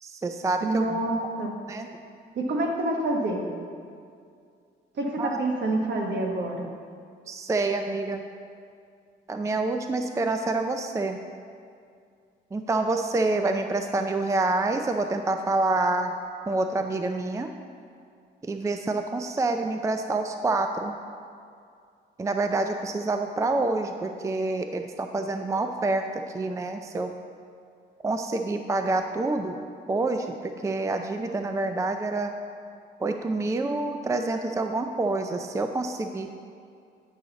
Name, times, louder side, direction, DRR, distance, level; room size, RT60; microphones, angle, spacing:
voice 1, 0.0-1.0 1.7-1.9 5.2-5.4 7.3-8.2 9.3-11.2 12.5-16.1 16.5-17.5 18.4-20.9 22.2-27.1 28.0-29.6 29.9-32.3 33.0-36.4, right 2 dB, 15° right, 6 dB, 0.4 m, -27 dB
voice 2, 0.6-1.5 2.3-3.5 5.0-6.7, right 2 dB, 60° right, 2 dB, 1.3 m, -27 dB
9.6 x 6.4 x 4.0 m, 2.3 s
cardioid pair, 90°, 20 cm